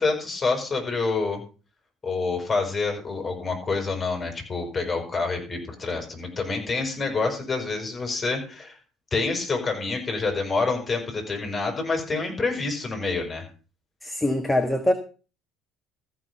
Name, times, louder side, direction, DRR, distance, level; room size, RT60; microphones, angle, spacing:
voice 1, 0.0-1.4 2.0-8.8 9.1-13.5, left 3 dB, 25° left, 5.5 m, -27 dB
voice 2, 14.0-14.9, left 1 dB, 10° left, 1.4 m, -23 dB
14.0 x 6.3 x 6.9 m
figure-of-eight pair, 60°, 0 cm